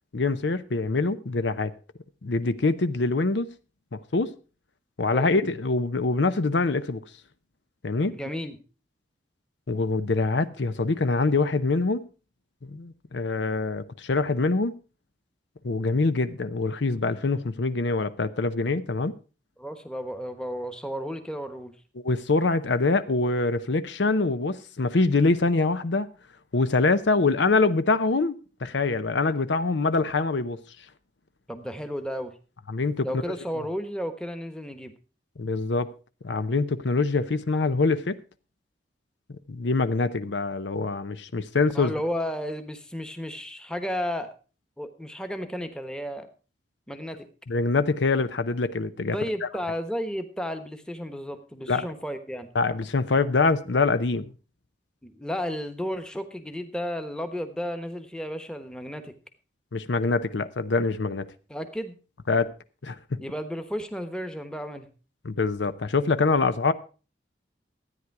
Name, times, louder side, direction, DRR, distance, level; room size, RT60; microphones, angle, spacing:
voice 1, 0.1-1.7 2.2-3.5 3.9-4.3 5.0-7.0 7.8-8.2 9.7-12.0 12.6-14.8 15.6-19.1 22.0-26.1 26.5-30.6 32.7-33.1 35.4-35.9 36.2-38.2 39.3-41.9 47.5-49.5 51.7-51.8 52.5-54.3 59.7-61.3 62.3-62.5 62.8-63.2 65.2-66.7, left 3 dB, 75° left, 0.7 m, -24 dB
voice 2, 8.1-8.6 19.6-21.7 31.5-32.3 33.0-34.9 41.7-44.3 44.8-46.3 46.9-47.3 49.1-52.5 55.0-59.1 61.5-62.0 63.2-64.9, equal, 5° left, 1.1 m, -33 dB
13.5 x 9.7 x 4.7 m
head